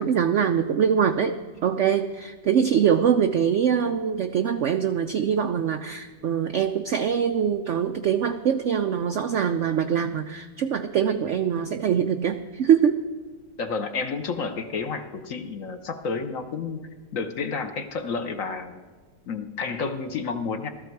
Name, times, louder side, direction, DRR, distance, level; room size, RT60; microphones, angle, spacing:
voice 1, 0.0-13.0, right 8 dB, 85° right, 8 dB, 0.6 m, -23 dB
voice 2, 13.6-16.8 17.1-18.8 19.3-20.7, left 4 dB, 55° left, 7 dB, 1.1 m, -30 dB
15.5 x 13.5 x 4.6 m, 1.4 s
omnidirectional pair, 1.9 m